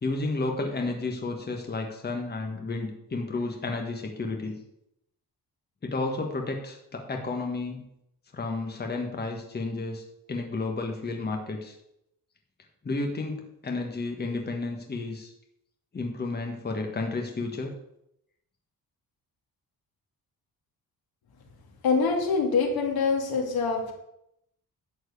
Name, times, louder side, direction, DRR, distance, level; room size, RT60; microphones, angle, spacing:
voice 1, 0.0-4.5 5.8-7.8 8.3-11.8 12.8-15.3 15.9-17.7, left 3 dB, 25° left, 2 dB, 1.5 m, -32 dB
voice 2, 21.8-23.9, left 4 dB, 75° left, 2 dB, 2.6 m, -25 dB
11.5 x 4.6 x 8.3 m, 0.80 s
cardioid pair, 135°, 37 cm